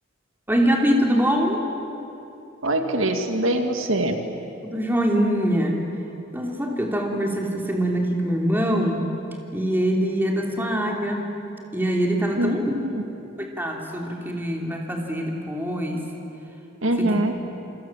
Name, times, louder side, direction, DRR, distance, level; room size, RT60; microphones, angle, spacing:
voice 1, 0.5-1.6 4.6-5.8 6.3-9.0 9.5-11.3 11.7-12.7 13.4-16.0 17.0-17.2, equal, 10° right, 0 dB, 3.1 m, -23 dB
voice 2, 2.6-4.2 12.4-13.0 16.8-17.3, right 1 dB, 85° right, 5 dB, 2.2 m, -23 dB
28.5 x 26.0 x 7.4 m, 2.8 s
head